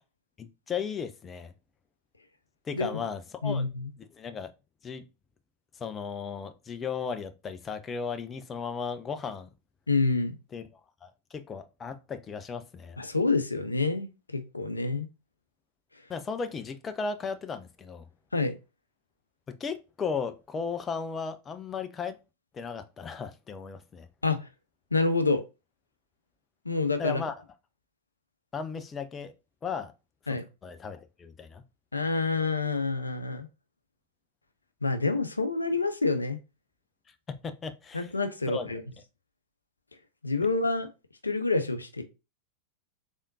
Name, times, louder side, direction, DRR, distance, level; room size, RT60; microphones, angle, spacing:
voice 1, 0.4-1.5 2.6-3.7 4.1-4.5 4.8-5.0 5.8-9.5 10.5-10.6 11.0-13.0 16.1-18.1 19.5-22.2 22.5-24.1 27.0-27.3 28.5-29.3 29.6-29.9 30.3-31.6 37.3-38.1 38.5-38.8, left 5 dB, 20° left, 0.5 m, -36 dB
voice 2, 3.4-3.9 9.9-10.4 13.0-15.1 18.3-18.5 24.2-24.5 24.9-25.4 26.7-27.2 30.3-30.4 31.9-33.5 34.8-36.4 37.9-38.8 40.2-40.9 41.2-42.0, left 3 dB, 80° left, 0.5 m, -27 dB
3.5 x 3.5 x 2.6 m
figure-of-eight pair, 90°, 0 cm